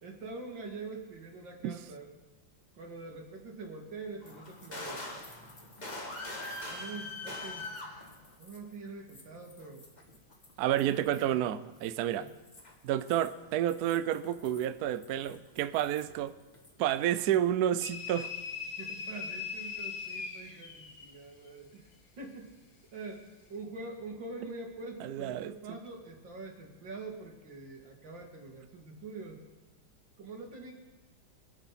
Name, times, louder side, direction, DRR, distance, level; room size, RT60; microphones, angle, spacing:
voice 1, 0.0-2.1 2.7-5.0 6.7-7.7 8.4-9.8 10.7-11.4 12.1-12.3 18.8-21.9 22.2-22.5 22.9-29.4 30.2-30.7, right 3 dB, 60° right, 3.0 m, -44 dB
sound 1, 4.2-8.7 9.1-11.3 11.8-16.3 16.5-17.4, left 2 dB, 25° left, 1.5 m, -44 dB
voice 2, 10.6-12.3 12.8-16.4 16.8-18.3 25.0-25.5, right 11 dB, 80° right, 0.8 m, -30 dB
sound 2, 17.8-21.1, left 5 dB, 55° left, 2.1 m, -40 dB
24.5 x 10.0 x 4.2 m
omnidirectional pair, 2.3 m